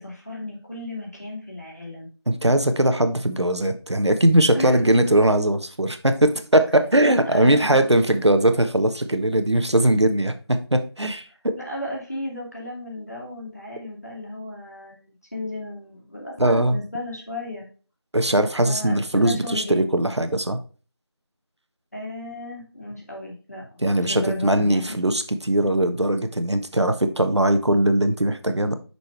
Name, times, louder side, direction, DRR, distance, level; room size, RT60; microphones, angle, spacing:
voice 1, 0.0-2.1 4.5-4.8 7.0-7.8 11.6-17.7 18.6-19.9 21.9-24.9, left 1 dB, 35° left, -1 dB, 2.3 m, -34 dB
voice 2, 2.3-11.3 16.4-16.8 18.1-20.6 23.8-28.8, right 1 dB, 85° right, 8 dB, 1.2 m, -20 dB
6.1 x 5.6 x 3.3 m, 0.36 s
figure-of-eight pair, 180°, 14 cm